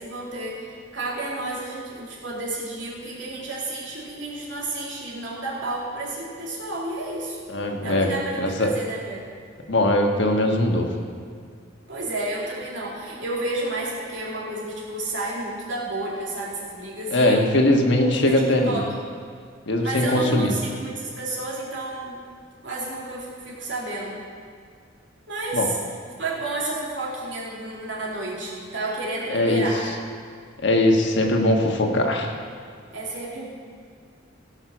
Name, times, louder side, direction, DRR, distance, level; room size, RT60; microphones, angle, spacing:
voice 1, 0.0-7.4 7.8-9.3 11.9-17.6 18.0-18.9 19.8-22.2 22.6-24.2 25.3-25.8 26.2-29.9 32.9-33.5, right 2 dB, 75° right, -5 dB, 2.8 m, -31 dB
voice 2, 7.5-8.1 8.4-8.7 9.7-10.8 17.1-18.8 19.7-20.5 25.5-25.7 29.3-29.7 30.6-32.3, left 1 dB, 70° left, 2 dB, 1.4 m, -20 dB
16.5 x 5.7 x 6.1 m, 2.1 s
head